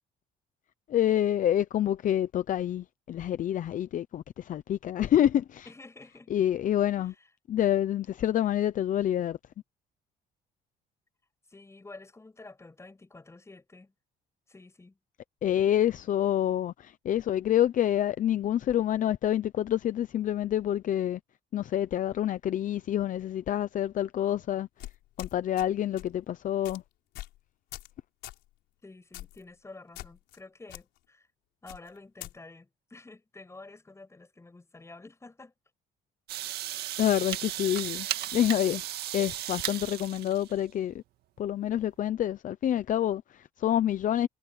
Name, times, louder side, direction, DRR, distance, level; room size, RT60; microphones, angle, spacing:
voice 1, 0.9-5.6 6.3-7.1 7.5-9.4 15.4-21.2 21.5-24.7 25.2-26.8 37.0-38.1 38.3-38.8 39.1-41.0 41.4-44.3, left 11 dB, 50° left, 0.8 m, -27 dB
voice 2, 5.7-6.3 7.0-7.1 11.5-13.9 14.5-15.0 28.8-31.3 31.6-35.5 36.7-36.8, left 3 dB, 15° left, 7.5 m, -50 dB
sound 1, 24.8-25.7 26.0-26.2 26.6-26.8 27.1-27.4 27.7-27.9 28.2-28.4 29.1-29.4 29.9-30.4 30.7-30.8 31.7-32.3, left 16 dB, 85° left, 4.9 m, -43 dB
sound 2, 36.3-40.6, right 13 dB, 75° right, 1.9 m, -35 dB
cardioid pair, 110°, 17 cm